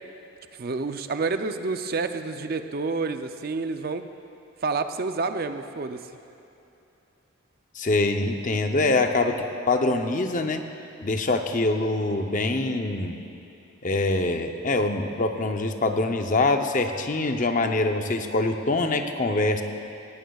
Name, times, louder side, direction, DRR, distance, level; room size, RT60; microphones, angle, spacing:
voice 1, 0.6-4.1 4.6-6.0, right 4 dB, 45° right, 8 dB, 0.4 m, -29 dB
voice 2, 7.7-10.6 11.0-13.2 13.8-19.6, left 2 dB, 35° left, 5 dB, 0.6 m, -24 dB
18.5 x 17.5 x 2.3 m, 2.8 s
head